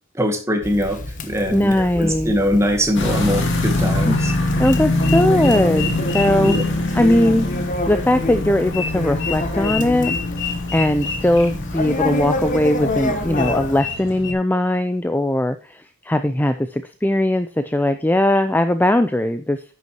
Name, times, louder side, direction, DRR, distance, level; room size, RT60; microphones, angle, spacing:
voice 1, 0.2-4.3 6.4-6.6, equal, 10° right, 4 dB, 1.9 m, -22 dB
Conversation, 0.6-13.8, left 2 dB, 35° left, 1.1 m, -28 dB
voice 2, 1.5-2.3 4.0-4.2 4.6-6.7 6.9-7.5 7.9-10.2 10.7-19.6, left 1 dB, 10° left, 10 dB, 0.4 m, -19 dB
sound 1, 2.9-14.3, left 2 dB, 55° left, 2.4 m, -24 dB
10.5 x 9.3 x 2.9 m, 0.35 s
head